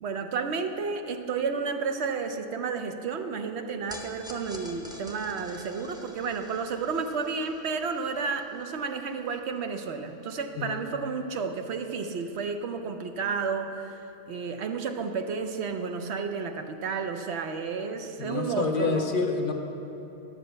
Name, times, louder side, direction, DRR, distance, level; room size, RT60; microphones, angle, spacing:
voice 1, 0.0-14.0 14.3-19.2, right 5 dB, 65° right, 7 dB, 0.8 m, -31 dB
sound 1, 3.9-10.3, equal, 5° right, 0.7 m, -48 dB
voice 2, 18.2-19.5, left 4 dB, 50° left, 5 dB, 0.7 m, -28 dB
11.0 x 5.0 x 7.7 m, 2.9 s
omnidirectional pair, 1.3 m